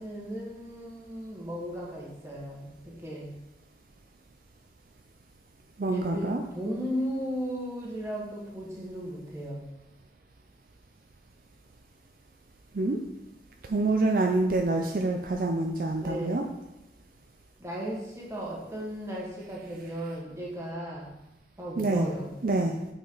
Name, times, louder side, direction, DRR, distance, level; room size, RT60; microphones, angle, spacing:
voice 1, 0.0-3.3 5.8-9.7 16.0-16.4 17.6-21.1 21.6-22.3, equal, 15° right, -4 dB, 1.5 m, -36 dB
voice 2, 5.8-6.4 12.7-13.0 13.7-16.4 21.8-22.1 22.4-22.8, right 2 dB, 50° right, 3 dB, 0.4 m, -26 dB
8.3 x 4.5 x 3.9 m, 0.96 s
head